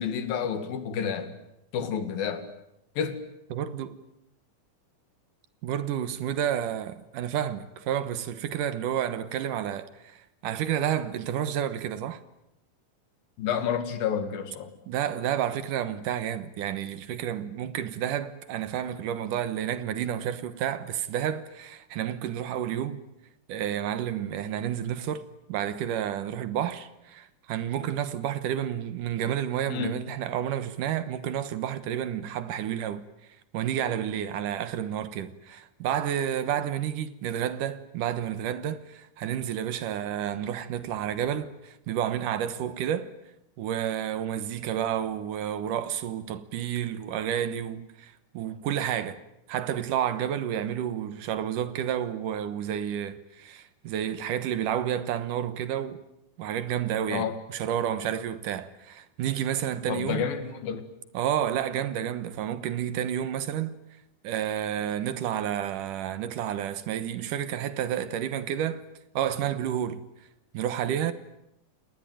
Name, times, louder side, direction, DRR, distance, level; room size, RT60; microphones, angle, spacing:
voice 1, 0.0-1.3 1.7-2.4 3.0-3.2 13.4-14.7 29.7-30.0 57.1-57.4 59.9-60.9, left 7 dB, 85° left, 3.8 m, -30 dB
voice 2, 3.5-3.9 5.6-12.2 14.9-23.0 23.5-33.0 33.5-43.1 43.6-49.2 49.5-56.0 56.4-60.2 61.1-63.8 64.2-68.8 69.1-70.0 70.5-71.1, right 10 dB, 70° right, 2.6 m, -30 dB
29.0 x 19.0 x 9.2 m
omnidirectional pair, 4.0 m